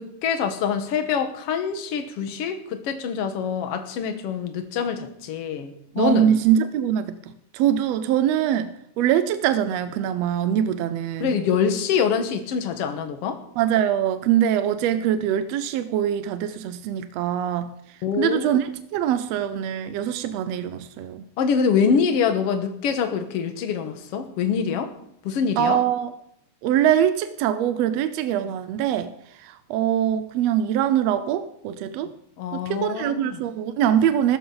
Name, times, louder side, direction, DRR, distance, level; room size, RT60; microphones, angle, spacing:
voice 1, 0.0-6.4 11.2-13.4 18.0-18.5 21.4-24.9 25.2-25.8 32.4-33.4, left 6 dB, 55° left, 7 dB, 2.0 m, -25 dB
voice 2, 6.0-7.2 7.5-11.4 13.6-21.2 25.6-26.1 26.6-29.1 29.4-32.2 32.5-34.4, right 10 dB, 80° right, 12 dB, 1.5 m, -23 dB
15.5 x 14.0 x 4.0 m, 0.72 s
omnidirectional pair, 3.6 m